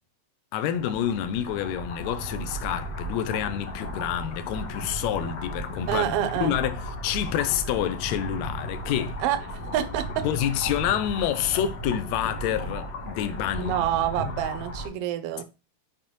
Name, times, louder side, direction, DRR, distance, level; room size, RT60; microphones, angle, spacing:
voice 1, 0.5-9.2 10.2-13.7, left 10 dB, 75° left, 1.9 m, -28 dB
sound 1, 0.7-14.9, equal, 60° left, 2.2 m, -35 dB
voice 2, 5.9-6.5 9.2-9.4 9.7-10.3 13.6-15.4, right 11 dB, 80° right, 1.4 m, -27 dB
7.1 x 5.0 x 3.0 m
omnidirectional pair, 3.4 m